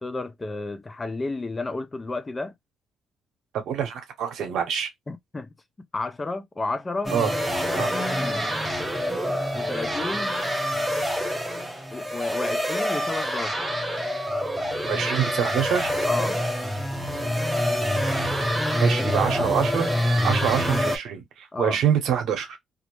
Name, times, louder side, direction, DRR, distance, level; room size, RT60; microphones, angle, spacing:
voice 1, 0.0-2.5 5.1-5.5 5.9-7.1 7.7-8.5 9.5-10.3 11.9-13.7 16.1-16.4 19.0-19.5 21.5-21.8, left 3 dB, 25° left, 0.5 m, -32 dB
voice 2, 3.5-4.9 7.1-7.3 7.7-7.9 14.8-15.9 18.8-19.9 20.2-22.6, right 8 dB, 80° right, 0.8 m, -25 dB
sound 1, 7.0-21.0, equal, 5° right, 0.7 m, -26 dB
2.4 x 2.0 x 2.9 m
cardioid pair, 90°, 0 cm